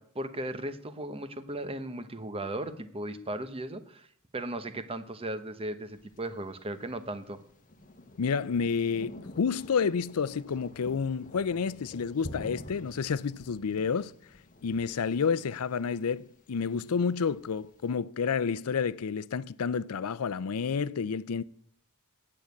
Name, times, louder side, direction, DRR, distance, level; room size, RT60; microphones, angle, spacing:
voice 1, 0.0-4.1 4.3-7.4, right 1 dB, 25° right, 0.9 m, -36 dB
Thunder, 5.9-17.9, left 1 dB, 40° left, 1.1 m, -49 dB
voice 2, 8.2-14.1 14.6-21.4, left 6 dB, 80° left, 0.5 m, -30 dB
8.9 x 8.6 x 9.4 m
head